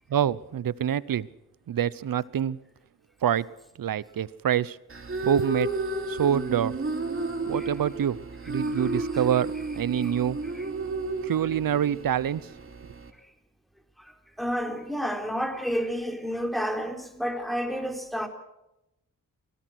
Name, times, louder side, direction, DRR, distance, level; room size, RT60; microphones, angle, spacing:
voice 1, 0.1-1.3 1.7-2.6 3.2-3.5 3.8-4.8 5.2-5.7 6.1-6.8 7.5-8.2 8.5-10.4 11.2-12.4, right 9 dB, 65° right, 0.9 m, -26 dB
sound 1, 4.9-13.1, right 2 dB, 35° right, 3.1 m, -32 dB
voice 2, 8.7-9.4 10.0-10.2 10.5-10.7 14.0-18.3, equal, ahead, 3.7 m, -31 dB
23.5 x 18.0 x 6.2 m
cardioid pair, 65°, 37 cm